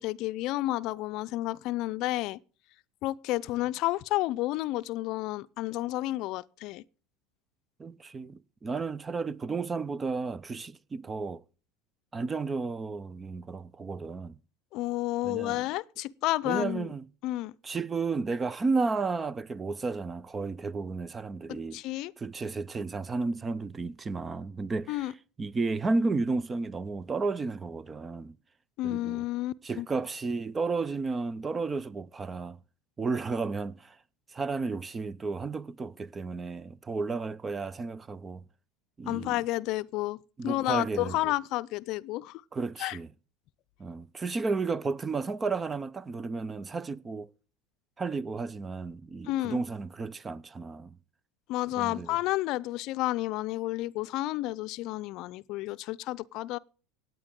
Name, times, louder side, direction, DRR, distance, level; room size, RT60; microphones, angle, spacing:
voice 1, 0.0-2.4 3.0-6.8 14.7-16.9 17.2-17.5 21.5-22.1 24.9-25.1 28.8-29.9 39.1-42.4 42.8-43.0 49.2-49.6 51.5-56.6, left 17 dB, 60° left, 0.5 m, -31 dB
voice 2, 7.8-11.4 12.1-14.4 15.2-15.6 16.4-17.0 17.6-21.8 22.2-25.1 25.4-28.4 28.8-29.2 29.6-32.6 33.0-34.0 34.3-38.4 39.0-39.4 40.4-41.2 42.5-43.1 43.8-47.3 48.0-51.0 51.8-52.2, right 4 dB, 25° right, 0.6 m, -32 dB
17.0 x 9.2 x 3.7 m
supercardioid pair, 95°, 0 cm